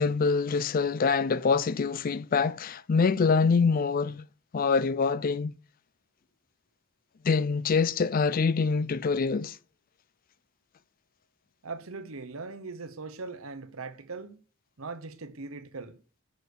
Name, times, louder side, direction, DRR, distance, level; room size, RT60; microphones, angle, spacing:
voice 1, 0.0-4.3 4.5-5.6 7.2-9.6, left 5 dB, 40° left, 0.4 m, -25 dB
voice 2, 11.6-14.4 14.8-16.0, right 4 dB, 80° right, 1.0 m, -40 dB
6.8 x 6.5 x 6.6 m
head